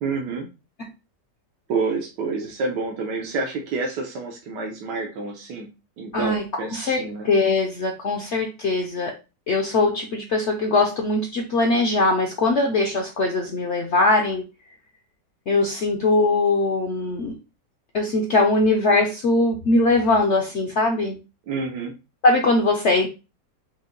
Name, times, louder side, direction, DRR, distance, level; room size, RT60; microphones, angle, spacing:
voice 1, 0.0-0.5 1.7-5.7 6.0-7.3 21.5-21.9, right 4 dB, 85° right, 1 dB, 1.4 m, -28 dB
voice 2, 6.1-6.4 6.7-9.2 9.5-14.4 15.5-17.4 17.9-21.2 22.2-23.1, left 2 dB, 60° left, 2 dB, 0.7 m, -21 dB
5.4 x 2.1 x 3.8 m, 0.29 s
omnidirectional pair, 1.8 m